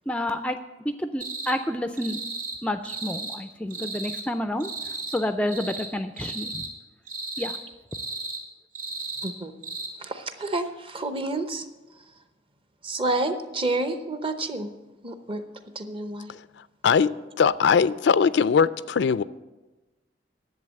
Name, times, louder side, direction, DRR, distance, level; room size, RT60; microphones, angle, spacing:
voice 1, 0.1-0.6 0.8-2.2 2.6-4.7 5.1-6.6 7.4-7.6, left 1 dB, 5° left, 0.3 m, -29 dB
sound 1, 1.2-1.5 2.0-2.6 2.8-3.4 3.7-4.2 4.6-5.2 5.5-5.9 6.2-6.7 7.1-7.6 7.9-8.4 8.7-9.3 9.6-9.9, right 3 dB, 50° right, 2.7 m, -34 dB
voice 2, 10.0-11.7 12.8-14.7 15.0-15.4 15.7-16.3, right 2 dB, 30° right, 0.8 m, -29 dB
voice 3, 16.8-19.2, left 6 dB, 80° left, 0.4 m, -21 dB
11.0 x 7.8 x 7.6 m
head